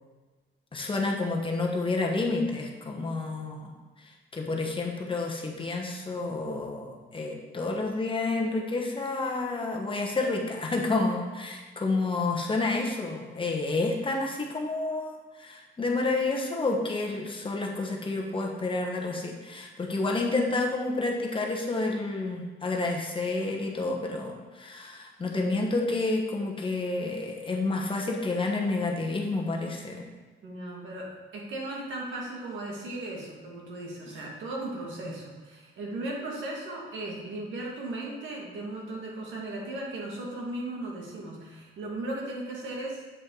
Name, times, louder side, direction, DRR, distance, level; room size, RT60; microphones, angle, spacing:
voice 1, 0.7-30.1 35.0-35.1, left 3 dB, 25° left, 0 dB, 1.2 m, -29 dB
voice 2, 30.4-43.0, right 2 dB, 75° right, -2 dB, 2.0 m, -37 dB
7.8 x 5.1 x 3.9 m, 1.3 s
cardioid pair, 90°, 20 cm